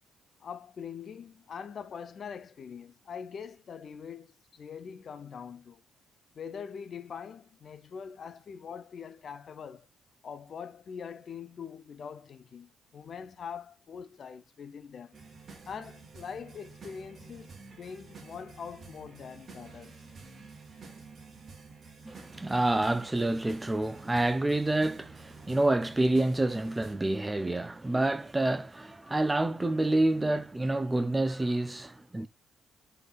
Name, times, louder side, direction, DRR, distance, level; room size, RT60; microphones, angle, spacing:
voice 1, 0.4-5.8 6.3-9.9 10.2-15.2 15.7-20.0 32.1-32.3, left 7 dB, 50° left, 0.5 m, -43 dB
sound 1, 15.1-26.9, right 4 dB, 45° right, 1.2 m, -50 dB
voice 2, 22.1-32.3, right 2 dB, 15° right, 0.3 m, -28 dB
3.7 x 3.4 x 2.3 m
cardioid pair, 90°, 0 cm